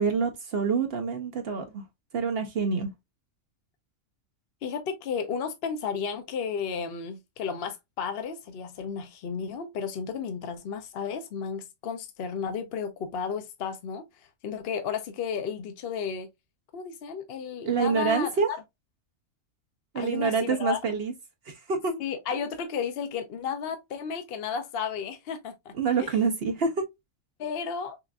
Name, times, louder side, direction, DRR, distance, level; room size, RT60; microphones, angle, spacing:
voice 1, 0.0-1.8 2.1-2.9 17.6-18.5 19.9-21.1 21.5-22.0 25.8-26.7, right 5 dB, 55° right, 0.8 m, -26 dB
voice 2, 4.6-16.3 16.7-18.6 19.9-20.8 22.0-26.2 27.4-28.0, left 6 dB, 60° left, 0.7 m, -33 dB
5.8 x 2.4 x 2.2 m
omnidirectional pair, 1.4 m